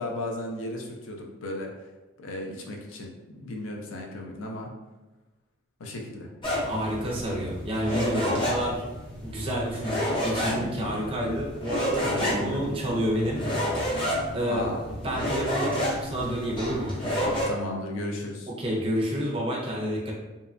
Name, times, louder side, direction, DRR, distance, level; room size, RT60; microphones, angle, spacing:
voice 1, 0.0-1.7 2.2-4.7 5.8-6.3 8.2-8.4 12.0-12.6 14.3-14.8 17.5-18.5, left 1 dB, 90° left, 1 dB, 0.5 m, -35 dB
sound 1, 6.4-17.5, equal, 25° left, 0.6 m, -30 dB
voice 2, 6.6-8.8 9.2-13.6 14.3-16.9 18.6-20.1, equal, 30° right, -2 dB, 0.5 m, -29 dB
2.8 x 2.2 x 2.4 m, 1.1 s
head